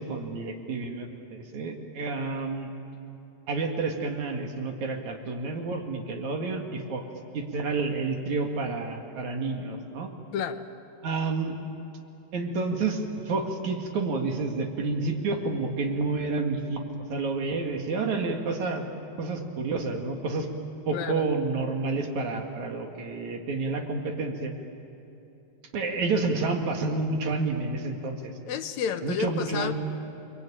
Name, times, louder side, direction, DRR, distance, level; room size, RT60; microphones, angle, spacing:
voice 1, 0.0-2.7 3.5-7.0 7.3-10.1 11.0-11.6 12.3-16.9 17.1-18.8 19.2-20.5 20.9-24.5 25.7-28.3 29.0-29.7, right 3 dB, 75° right, 3 dB, 3.5 m, -29 dB
voice 2, 10.3-10.6 20.9-21.3 28.5-29.7, left 7 dB, 75° left, 9 dB, 2.2 m, -30 dB
29.5 x 21.5 x 8.9 m, 2.9 s
omnidirectional pair, 3.4 m